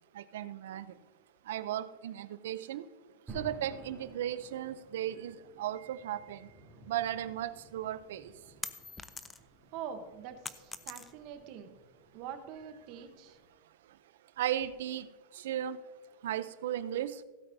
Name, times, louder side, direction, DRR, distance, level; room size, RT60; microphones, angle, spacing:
voice 1, 0.1-0.9 1.5-2.9 3.3-6.5 6.9-8.3 14.4-15.1 15.3-15.8 16.2-17.2, right 11 dB, 70° right, 15 dB, 0.5 m, -36 dB
sound 1, 3.3-13.4, right 1 dB, 10° right, 3.3 m, -54 dB
sound 2, 7.8-9.6 10.0-11.4, left 4 dB, 10° left, 0.3 m, -43 dB
voice 2, 9.7-11.7 12.1-13.4, right 8 dB, 35° right, 8 dB, 1.0 m, -44 dB
16.5 x 8.8 x 2.7 m, 1.3 s
supercardioid pair, 175°, 0 cm